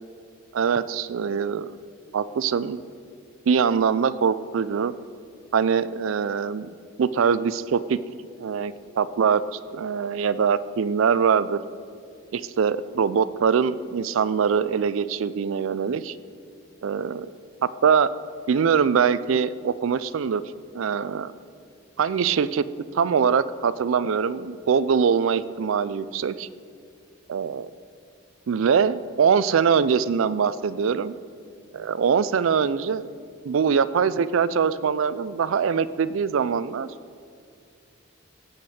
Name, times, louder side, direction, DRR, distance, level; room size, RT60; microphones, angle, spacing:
voice 1, 0.5-1.7 2.1-2.8 3.5-4.9 5.5-6.7 7.0-8.0 8.4-11.6 12.3-16.1 16.8-17.3 17.6-18.1 18.5-20.4 20.7-21.3 22.0-22.6 22.9-26.5 27.3-27.7 28.5-31.1 31.7-33.0 33.4-36.9, right 6 dB, 75° right, 16 dB, 0.4 m, -23 dB
16.5 x 8.1 x 4.3 m, 2.3 s
head